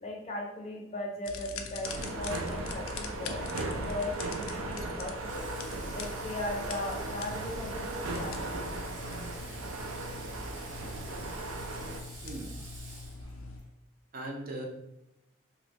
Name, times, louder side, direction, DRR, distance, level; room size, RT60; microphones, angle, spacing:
voice 1, 0.0-3.5 3.7-5.5 5.9-8.4, left 1 dB, 30° left, 0 dB, 0.5 m, -38 dB
sound 1, 1.2-13.6, left 4 dB, 80° left, 0.4 m, -43 dB
sound 2, 1.8-12.0, right 2 dB, 90° right, 0.5 m, -37 dB
voice 2, 1.9-2.2 3.2-3.4 4.8-4.9 12.2-12.5 14.1-14.6, right 1 dB, 45° right, 0 dB, 0.6 m, -41 dB
Water / Water tap faucet, 5.2-13.7, right 2 dB, 75° right, 0.9 m, -49 dB
3.0 x 2.4 x 3.2 m, 0.87 s
head